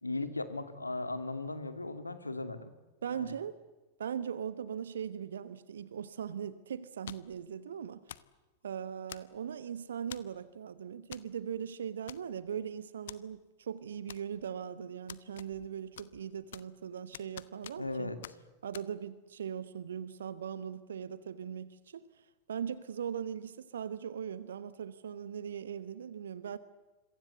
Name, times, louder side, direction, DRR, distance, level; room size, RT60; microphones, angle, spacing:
voice 1, 0.0-2.7 3.1-3.3 17.8-18.2, left 2 dB, 80° left, 11 dB, 2.1 m, -37 dB
voice 2, 3.0-3.5 4.0-8.0 8.6-18.1 18.6-22.1 22.5-26.6, right 8 dB, 65° right, 15 dB, 1.0 m, -40 dB
sound 1, 7.1-7.4 8.1-8.4 9.1-9.5 10.1-10.4 11.1-11.3 11.6-11.7 12.1-12.6 13.1-13.2 14.1-14.6 15.1-15.7 16.0-16.8 17.1-18.0 18.2-18.4 18.7-18.9, left 11 dB, 60° left, 0.9 m, -48 dB
26.5 x 23.5 x 8.0 m, 1.2 s
figure-of-eight pair, 90°, 0 cm